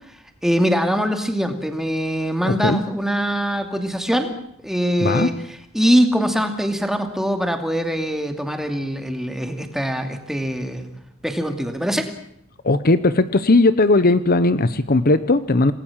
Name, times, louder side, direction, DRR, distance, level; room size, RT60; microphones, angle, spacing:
voice 1, 0.4-4.3 4.6-5.3 5.7-10.9 11.2-12.1, equal, ahead, 6 dB, 2.5 m, -22 dB
voice 2, 2.4-2.8 5.0-5.3 12.6-15.7, left 2 dB, 45° left, 13 dB, 1.0 m, -17 dB
28.0 x 19.5 x 7.4 m, 0.73 s
head